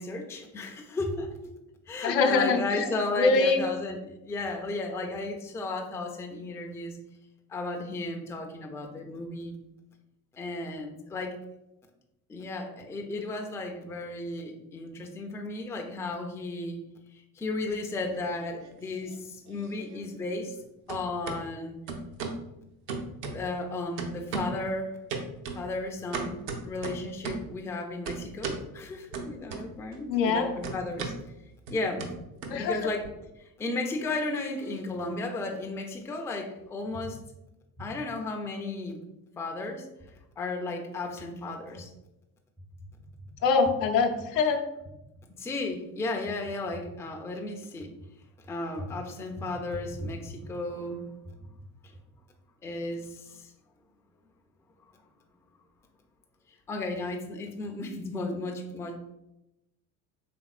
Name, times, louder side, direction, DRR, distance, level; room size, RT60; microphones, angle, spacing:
voice 1, 0.0-1.5 1.9-7.0 7.5-9.6 10.3-11.4 12.3-16.8 17.1-20.6 20.9-21.8 23.3-25.0 25.5-31.1 31.7-32.1 32.5-33.1 33.6-37.2 37.8-39.0 39.4-41.9 43.3-43.4 45.4-47.9 48.5-51.5 52.6-53.5 56.7-59.0, left 2 dB, 5° left, 2 dB, 0.4 m, -34 dB
voice 2, 2.0-2.9 3.2-3.6 30.1-30.5 32.5-32.9 43.4-44.6, left 4 dB, 80° left, 3 dB, 0.7 m, -24 dB
sound 1, 17.7-18.7 19.0-20.6 20.9-21.4 21.9-22.4 22.9-23.7 24.0-24.7 25.1-27.5 28.1-28.7 29.1-30.0 30.2-33.1, right 4 dB, 70° right, 0.8 m, -37 dB
4.3 x 3.4 x 2.4 m, 0.90 s
figure-of-eight pair, 60°, 49 cm